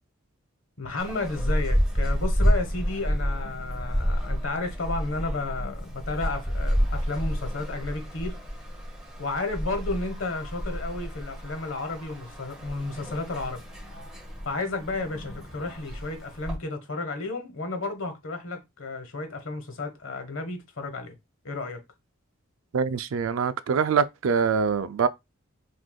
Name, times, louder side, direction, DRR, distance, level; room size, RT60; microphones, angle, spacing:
voice 1, 0.8-8.4 9.2-13.6 14.4-21.1 21.4-21.8, left 3 dB, 75° left, 1.1 m, -32 dB
sound 1, 1.0-16.6, equal, 5° right, 1.4 m, -30 dB
voice 2, 22.7-25.1, right 6 dB, 75° right, 0.4 m, -24 dB
6.1 x 2.6 x 2.2 m
head